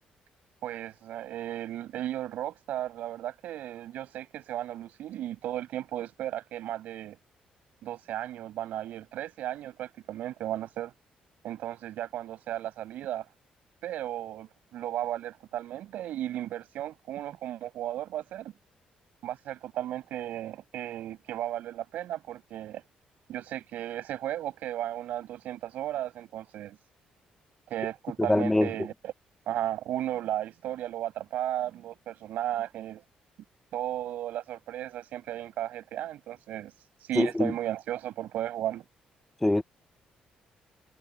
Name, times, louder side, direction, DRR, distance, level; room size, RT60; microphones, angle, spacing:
voice 1, 0.6-7.2 7.8-10.9 11.4-13.3 13.8-18.5 19.2-22.8 23.3-26.8 27.7-29.1 29.5-33.0 33.7-36.7 37.0-38.8, right 12 dB, 80° right, 6.2 m, -35 dB
voice 2, 28.3-28.7 37.2-37.5 39.4-39.6, left 1 dB, 10° left, 0.8 m, -23 dB
cardioid pair, 155°, 3 cm